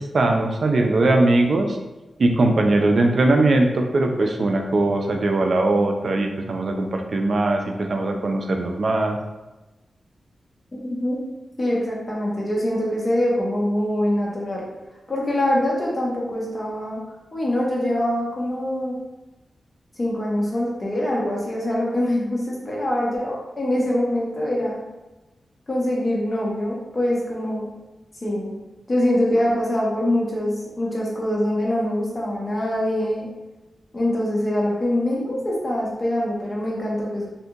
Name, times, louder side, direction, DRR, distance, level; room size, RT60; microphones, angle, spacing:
voice 1, 0.0-1.8 2.2-9.2, right 2 dB, 60° right, 3 dB, 0.3 m, -20 dB
voice 2, 10.7-11.2 11.6-14.7 15.1-17.0 17.3-19.0 20.0-24.8 25.7-27.7 28.2-28.5 28.9-33.3 33.9-37.3, left 1 dB, 35° left, -4 dB, 0.8 m, -24 dB
2.7 x 2.5 x 2.4 m, 1.1 s
wide cardioid pair, 80°, 0 cm